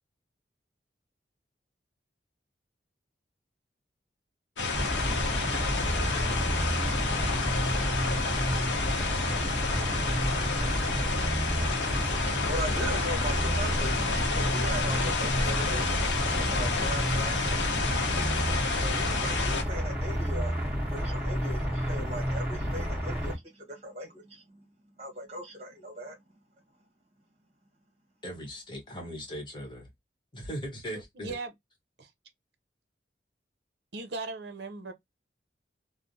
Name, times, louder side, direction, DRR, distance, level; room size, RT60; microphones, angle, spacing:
sound 1, 4.6-19.6, left 3 dB, 90° left, 0.7 m, -30 dB
sound 2, 4.7-23.3, equal, 5° right, 1.3 m, -30 dB
voice 1, 11.9-18.2 18.8-20.6 20.9-24.7 25.0-26.2, equal, 35° right, 1.3 m, -39 dB
voice 2, 28.2-29.9 30.3-31.4, equal, 25° left, 1.0 m, -39 dB
voice 3, 31.2-31.5 32.0-32.1 33.9-34.9, right 3 dB, 70° right, 0.6 m, -37 dB
3.2 x 2.1 x 2.5 m
head